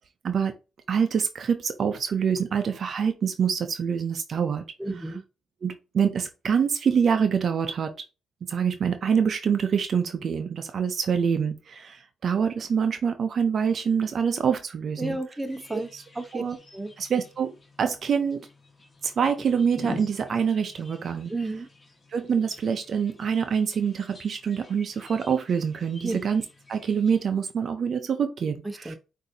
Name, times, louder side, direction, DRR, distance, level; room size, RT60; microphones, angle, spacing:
voice 1, 0.9-4.6 5.6-7.9 8.4-15.2 15.7-16.0 16.3-16.6 17.0-17.5 17.8-18.4 19.0-21.3 22.1-26.4 26.7-28.9, right 7 dB, 55° right, 0.6 m, -25 dB
voice 2, 4.8-5.2 15.0-15.9 16.1-16.4 16.7-16.9 21.3-21.7 26.0-26.2 28.6-29.0, right 2 dB, 15° right, 0.9 m, -31 dB
sound 1, 15.4-27.3, left 2 dB, 35° left, 1.4 m, -47 dB
6.1 x 2.7 x 2.7 m
cardioid pair, 80°, 0 cm